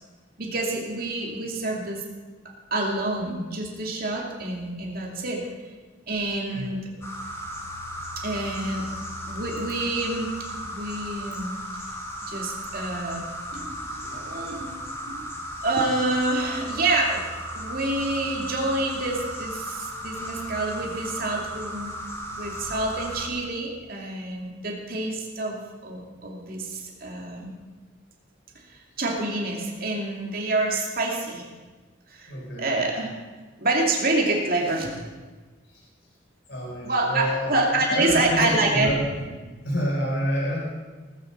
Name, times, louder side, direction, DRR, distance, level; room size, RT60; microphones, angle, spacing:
voice 1, 0.4-2.0 2.7-5.5 6.1-6.8 8.2-8.9 9.3-10.3 10.6-11.5 12.3-13.3 13.5-15.3 15.6-17.2 17.5-21.9 22.3-27.5 28.7-31.5 32.1-32.3 32.6-33.1 33.6-35.0 36.8-38.9, right 2 dB, 50° right, -1 dB, 2.7 m, -27 dB
sound 1, 7.0-23.3, equal, 15° left, 2.1 m, -35 dB
voice 2, 32.3-32.7 35.7-35.8 36.5-37.5 37.9-39.0 39.6-40.6, equal, 65° left, -3 dB, 4.4 m, -28 dB
19.0 x 7.7 x 6.8 m, 1.3 s
head